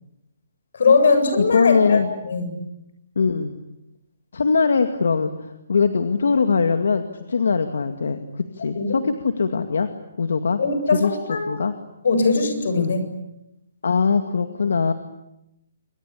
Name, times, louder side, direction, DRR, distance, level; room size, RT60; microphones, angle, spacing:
voice 1, 0.7-2.5 8.7-9.0 10.6-11.5 12.0-13.0, left 4 dB, 70° left, 9 dB, 7.9 m, -20 dB
voice 2, 1.4-2.1 3.2-3.5 4.3-9.9 10.2-10.6 10.9-11.1 11.5-11.7 12.8-12.9 13.8-14.9, left 5 dB, 90° left, 8 dB, 2.2 m, -21 dB
28.0 x 25.0 x 8.6 m, 0.87 s
hypercardioid pair, 170°, 0 cm